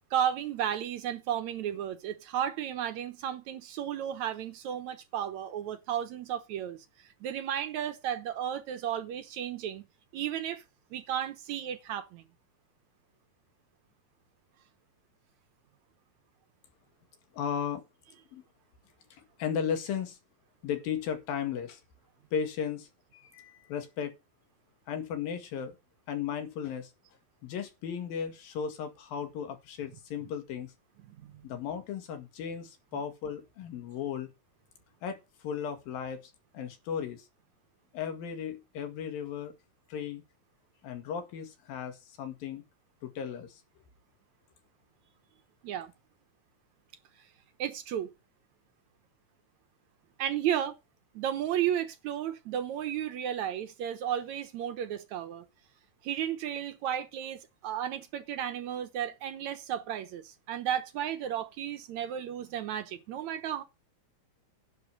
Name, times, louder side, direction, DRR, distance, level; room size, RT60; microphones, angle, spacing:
voice 1, 0.1-9.8 10.1-10.6 10.9-12.2 31.1-31.4 45.6-45.9 47.6-48.1 50.2-50.8 51.1-55.5 56.0-63.6, right 10 dB, 65° right, 2.2 m, -33 dB
voice 2, 17.3-17.9 18.3-18.4 19.1-20.2 20.6-21.8 22.3-24.1 24.9-25.8 26.1-26.9 27.4-30.7 31.4-34.3 35.0-35.2 35.4-37.3 37.9-39.5 39.9-40.2 40.8-42.6 43.0-43.6, left 7 dB, 85° left, 3.7 m, -35 dB
10.5 x 4.8 x 7.7 m
omnidirectional pair, 4.0 m